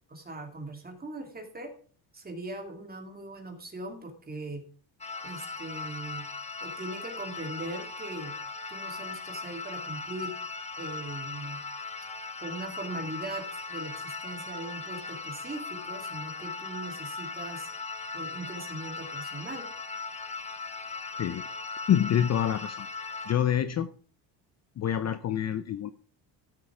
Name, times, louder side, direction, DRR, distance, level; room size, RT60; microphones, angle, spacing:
voice 1, 0.1-1.7 2.1-4.6 5.2-6.3 6.6-8.4 8.7-10.4 10.8-11.6 12.4-17.7 18.1-19.7, right 2 dB, 20° right, 4 dB, 2.5 m, -40 dB
sound 1, 5.0-23.3, left 4 dB, 15° left, 1.1 m, -38 dB
voice 2, 21.9-22.9 23.3-23.9 24.8-25.9, left 9 dB, 35° left, 12 dB, 0.6 m, -26 dB
13.0 x 7.4 x 4.8 m, 0.43 s
cardioid pair, 110°, 46 cm